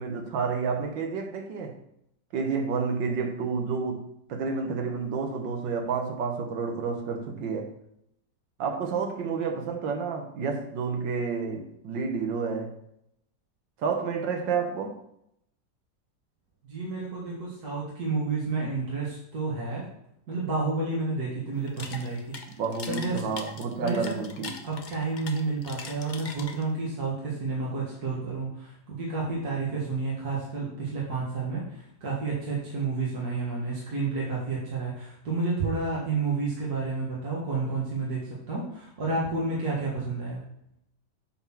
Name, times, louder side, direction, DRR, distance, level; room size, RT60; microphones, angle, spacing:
voice 1, 0.0-1.7 2.3-7.7 8.6-12.7 13.8-15.0 22.5-24.5, right 5 dB, 80° right, 4 dB, 1.8 m, -30 dB
voice 2, 16.6-19.8 20.3-22.4 22.9-23.3 23.8-24.1 24.6-31.6 32.0-38.2 38.5-40.4, right 3 dB, 60° right, -6 dB, 2.2 m, -30 dB
sound 1, 21.6-26.9, left 4 dB, 90° left, 0.4 m, -41 dB
8.0 x 4.1 x 6.0 m, 0.77 s
omnidirectional pair, 2.0 m